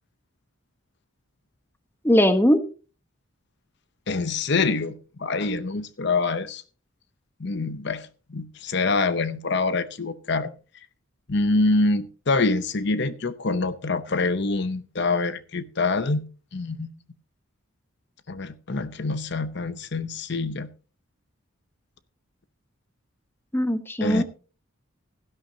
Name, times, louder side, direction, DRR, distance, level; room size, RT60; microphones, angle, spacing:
voice 1, 2.0-2.6 23.5-24.2, equal, 10° left, 0.9 m, -19 dB
voice 2, 4.1-6.6 7.4-10.5 11.3-16.3 16.5-16.9 18.3-20.7 24.0-24.2, left 3 dB, 55° left, 0.7 m, -25 dB
16.5 x 12.0 x 2.7 m
head